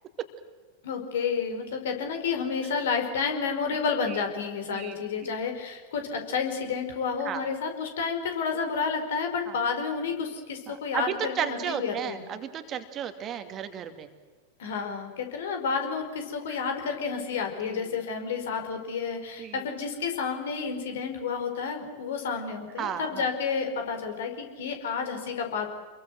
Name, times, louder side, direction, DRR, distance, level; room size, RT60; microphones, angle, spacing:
voice 1, 0.8-12.2 14.6-25.7, left 5 dB, 60° left, 5 dB, 4.9 m, -30 dB
voice 2, 4.7-5.3 7.2-7.4 9.5-9.6 10.7-14.1 16.5-16.7 17.6-18.0 19.4-19.7 22.8-23.3, right 9 dB, 30° right, 8 dB, 2.4 m, -34 dB
28.5 x 22.5 x 7.9 m, 1.4 s
figure-of-eight pair, 90°, 0 cm